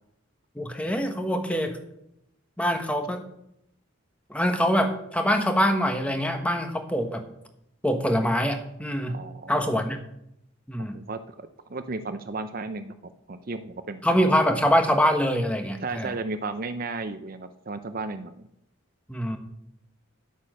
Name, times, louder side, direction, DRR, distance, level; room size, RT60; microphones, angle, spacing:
voice 1, 0.6-1.8 2.6-3.2 4.3-7.2 7.8-9.2 9.5-10.0 10.7-11.0 14.0-16.1 19.1-19.4, equal, 5° left, 6 dB, 1.2 m, -24 dB
voice 2, 9.1-9.8 10.9-11.2 11.7-14.0 15.8-18.3, right 3 dB, 45° right, 10 dB, 0.6 m, -34 dB
11.0 x 8.6 x 6.4 m, 0.79 s
head